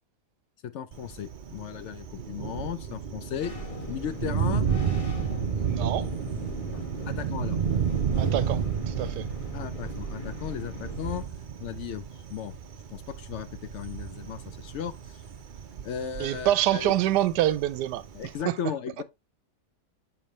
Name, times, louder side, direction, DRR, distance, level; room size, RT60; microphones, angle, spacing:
voice 1, 0.6-3.5 3.9-4.7 6.7-7.6 9.5-11.2 11.6-12.5 12.9-15.2 15.8-16.9 18.1-19.0, left 9 dB, 75° left, 0.6 m, -36 dB
Thunder, 0.9-18.4, right 7 dB, 65° right, 0.4 m, -32 dB
sound 1, 3.4-11.2, equal, 25° left, 1.1 m, -39 dB
voice 2, 5.6-6.1 8.2-9.3 16.2-18.0 18.4-18.6, right 13 dB, 90° right, 1.2 m, -26 dB
7.0 x 5.2 x 3.0 m
omnidirectional pair, 1.8 m